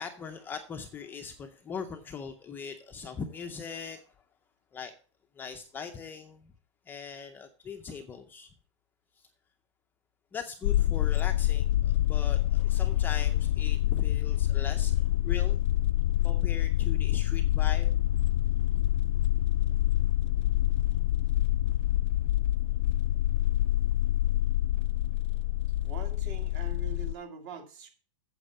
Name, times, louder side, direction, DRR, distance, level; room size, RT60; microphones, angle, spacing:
voice 1, 0.0-4.1 4.7-4.9 5.4-6.5 6.9-8.5 10.3-15.6 16.2-18.0, left 6 dB, 10° left, 5 dB, 0.5 m, -40 dB
sound 1, 10.6-27.1, left 13 dB, 75° left, 0.4 m, -26 dB
voice 2, 25.8-27.9, right 5 dB, 40° right, 6 dB, 1.9 m, -43 dB
8.9 x 7.3 x 5.5 m, 0.40 s
supercardioid pair, 165°, 16 cm